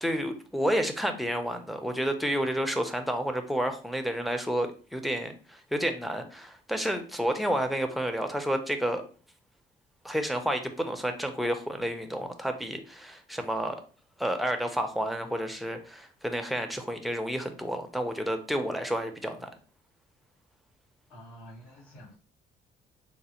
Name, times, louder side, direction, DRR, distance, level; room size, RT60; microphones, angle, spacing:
voice 1, 0.0-9.0 10.0-13.8 14.2-19.5, equal, ahead, 7 dB, 0.5 m, -30 dB
voice 2, 21.1-22.2, equal, 80° left, -10 dB, 1.4 m, -48 dB
4.0 x 2.1 x 2.9 m, 0.39 s
cardioid pair, 90°, 20 cm